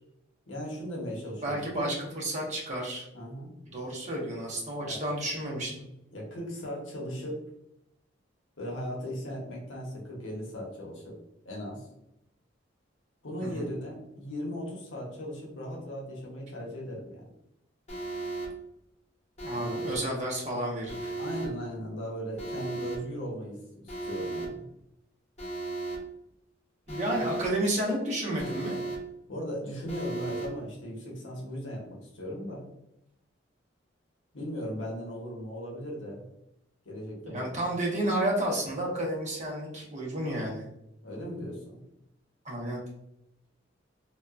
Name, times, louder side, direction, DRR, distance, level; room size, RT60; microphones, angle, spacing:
voice 1, 0.5-1.9 3.1-3.5 4.8-5.0 6.1-7.4 8.6-11.2 11.4-11.9 13.2-17.3 19.6-20.0 21.2-24.6 29.3-32.7 34.3-36.2 36.8-37.7 41.0-41.8, equal, 80° left, -2 dB, 0.8 m, -38 dB
voice 2, 1.4-3.1 3.7-5.9 13.4-13.7 19.4-21.1 26.9-28.8 37.2-40.7 42.4-42.8, right 1 dB, 40° right, -2 dB, 0.7 m, -31 dB
Alarm, 17.9-18.5 19.4-20.0 20.9-21.5 22.4-23.0 23.9-24.5 25.4-26.0 26.9-27.5 28.4-29.0 29.9-30.5, right 3 dB, 35° left, 0.8 m, -35 dB
2.8 x 2.2 x 2.3 m, 0.83 s
head